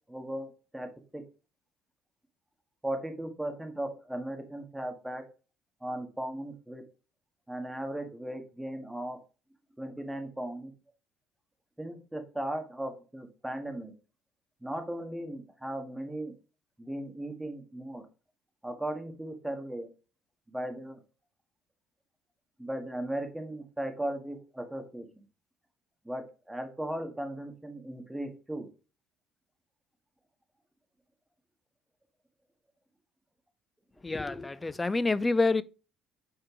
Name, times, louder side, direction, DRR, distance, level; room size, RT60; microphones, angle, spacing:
voice 1, 0.1-1.2 2.8-5.2 5.8-6.8 7.5-9.2 9.8-10.7 11.8-13.9 14.6-16.3 16.8-18.1 18.6-19.9 20.5-21.0 22.6-25.0 26.0-28.7, right 1 dB, 5° right, 1.6 m, -37 dB
voice 2, 34.0-35.6, left 3 dB, 15° left, 0.4 m, -27 dB
5.1 x 4.4 x 4.8 m
cardioid pair, 95°, 0 cm